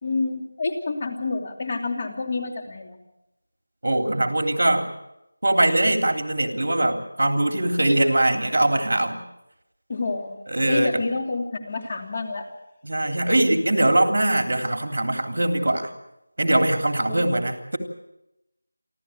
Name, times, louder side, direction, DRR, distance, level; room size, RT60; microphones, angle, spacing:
voice 1, 0.0-3.0 9.9-10.4 10.7-12.4 17.1-17.3, left 3 dB, 30° left, 2 dB, 3.0 m, -28 dB
voice 2, 3.8-4.9 5.4-9.2 10.5-11.1 12.8-15.9 16.4-17.8, right 1 dB, 55° right, 5 dB, 3.4 m, -22 dB
29.5 x 13.0 x 8.8 m, 0.89 s
figure-of-eight pair, 170°, 0 cm